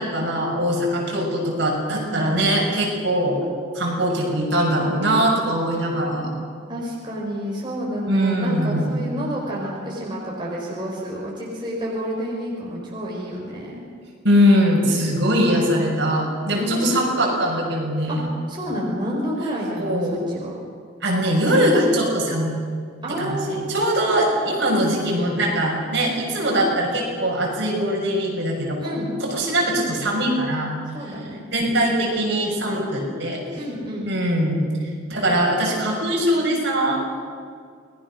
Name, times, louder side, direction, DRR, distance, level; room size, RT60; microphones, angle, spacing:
voice 1, 0.0-3.4 3.7-6.3 8.1-8.9 14.2-18.3 19.8-20.1 21.0-22.5 23.2-30.8 31.1-31.2 31.5-33.4 34.0-34.7 35.1-37.0, equal, 55° right, -2 dB, 6.5 m, -21 dB
voice 2, 6.7-13.8 16.5-17.0 18.1-18.2 18.5-20.5 23.0-24.4 28.8-29.1 30.9-31.4 33.5-34.1, equal, 25° right, -4 dB, 4.4 m, -29 dB
28.5 x 20.5 x 6.3 m, 2.1 s
head